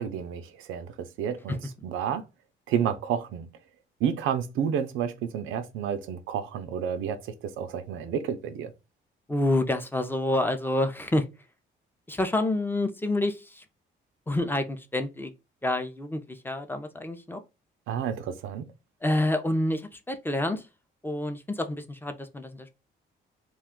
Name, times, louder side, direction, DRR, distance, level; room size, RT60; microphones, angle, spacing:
voice 1, 0.0-2.2 2.7-3.5 4.0-8.7 17.9-18.7, right 8 dB, 90° right, 0.5 m, -30 dB
voice 2, 9.3-11.3 12.1-13.6 14.3-15.3 15.6-17.4 19.0-20.7 21.0-22.7, left 1 dB, 10° left, 0.5 m, -28 dB
2.4 x 2.3 x 3.6 m
cardioid pair, 90°, 20 cm